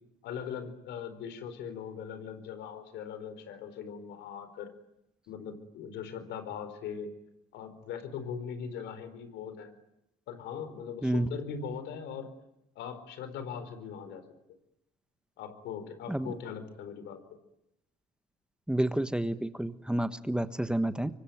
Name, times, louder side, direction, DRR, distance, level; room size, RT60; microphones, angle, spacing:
voice 1, 0.2-4.7 5.3-7.1 7.5-9.7 10.3-12.3 12.8-14.2 15.4-17.2, left 7 dB, 65° left, 11 dB, 4.4 m, -40 dB
voice 2, 18.7-21.1, right 1 dB, 5° right, 11 dB, 1.3 m, -29 dB
25.5 x 24.5 x 9.3 m, 0.84 s
hypercardioid pair, 60°, 19 cm